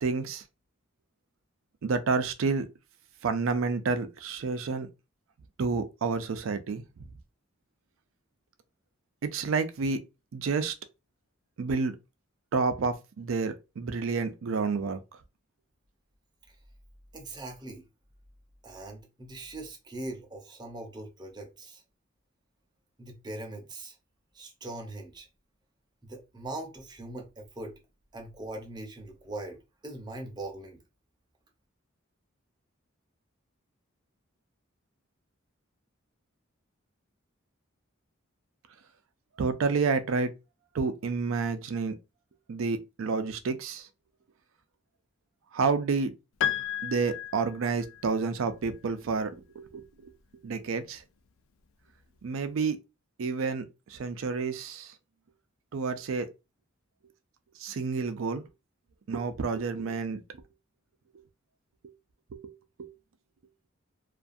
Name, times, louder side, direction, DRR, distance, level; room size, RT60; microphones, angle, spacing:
voice 1, 0.0-0.4 1.8-2.7 3.2-4.9 5.6-6.8 9.3-10.0 10.3-10.7 11.6-12.0 12.5-15.0 39.4-40.3 40.7-41.9 42.5-43.8 45.5-46.1 46.8-49.8 50.4-51.0 52.2-52.8 53.2-53.6 53.9-54.9 55.7-56.3 57.6-58.4 59.1-60.2 62.3-62.4 62.8-62.9, right 4 dB, 70° right, 0.4 m, -29 dB
voice 2, 17.1-17.8 18.6-21.8 23.0-23.9 24.3-25.3 26.0-27.8 28.1-30.8, right 2 dB, 20° right, 0.7 m, -41 dB
Piano, 46.4-48.1, left 11 dB, 80° left, 0.4 m, -32 dB
2.4 x 2.3 x 2.5 m
head